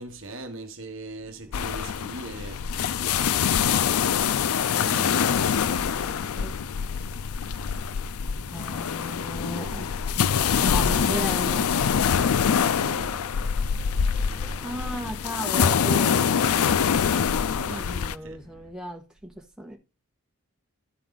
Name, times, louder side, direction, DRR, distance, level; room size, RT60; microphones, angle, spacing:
voice 1, 0.0-2.7 12.1-13.3 16.4-16.8 17.6-18.4, right 2 dB, 60° right, 1.0 m, -41 dB
sound 1, 1.1-18.7, equal, 15° left, 2.4 m, -50 dB
sound 2, 1.5-18.2, left 7 dB, 80° left, 0.4 m, -25 dB
voice 2, 4.4-6.6 8.5-9.9 10.6-11.7 14.4-16.3 17.6-19.8, equal, 5° right, 1.5 m, -36 dB
12.0 x 4.5 x 3.9 m
head